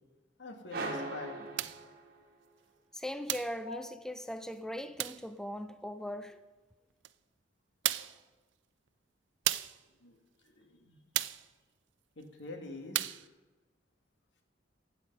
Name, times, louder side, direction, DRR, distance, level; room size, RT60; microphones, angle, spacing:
voice 1, 0.4-1.6 3.6-3.8 8.0-8.1 10.0-10.2 10.4-11.0 12.2-13.2, left 3 dB, 80° left, 1.9 m, -46 dB
sound 1, 0.7-2.5, right 2 dB, 55° right, 2.2 m, -40 dB
sound 2, 1.6-1.9 3.3-3.6 5.0-5.3 7.0-7.1 7.8-8.2 9.5-9.8 11.1-11.5 12.9-13.3, right 14 dB, 80° right, 0.5 m, -33 dB
voice 2, 2.9-6.4, equal, 5° left, 0.4 m, -39 dB
15.5 x 8.4 x 5.4 m
head